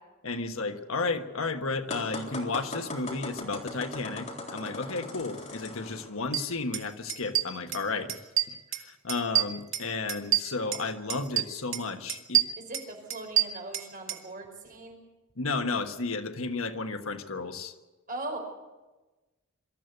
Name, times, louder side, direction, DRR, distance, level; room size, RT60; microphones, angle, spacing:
voice 1, 0.2-8.2 8.5-12.5 15.4-17.7, left 3 dB, 75° left, 7 dB, 1.4 m, -33 dB
sound 1, 1.9-6.1, left 2 dB, 35° left, 3.8 m, -39 dB
sound 2, 6.3-6.4 6.7-6.8 7.1-7.8 8.1-8.8 9.1-10.8 11.1-11.8 12.1-14.2, right 12 dB, 70° right, 1.9 m, -27 dB
voice 2, 12.6-15.0 18.1-18.4, right 2 dB, 40° right, 2 dB, 4.9 m, -39 dB
24.5 x 14.0 x 8.0 m, 1.2 s
head